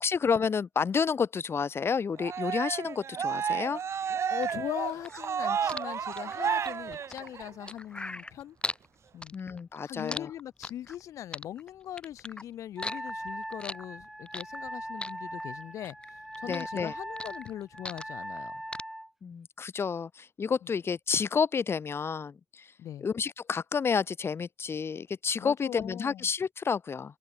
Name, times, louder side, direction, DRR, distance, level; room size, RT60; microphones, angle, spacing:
voice 1, 0.0-3.8 9.3-10.3 16.5-16.9 19.2-22.7 23.0-27.1, left 6 dB, 50° left, 1.6 m, -30 dB
Cheering, 2.2-7.7, right 7 dB, 60° right, 1.7 m, -32 dB
voice 2, 4.3-8.6 9.1-9.3 9.8-18.5 20.6-20.7 22.8-23.1 25.4-26.2, left 11 dB, 75° left, 4.5 m, -40 dB
sound 1, 4.4-8.9 9.2-11.0 11.3-12.4 12.8-14.7 15.0-16.1 16.3-18.4 18.7-18.8, left 2 dB, 20° left, 3.2 m, -39 dB
Wind instrument woodwind instrument, 12.8-19.1, right 1 dB, 5° right, 3.2 m, -40 dB
open air
supercardioid pair, 55°, 5 cm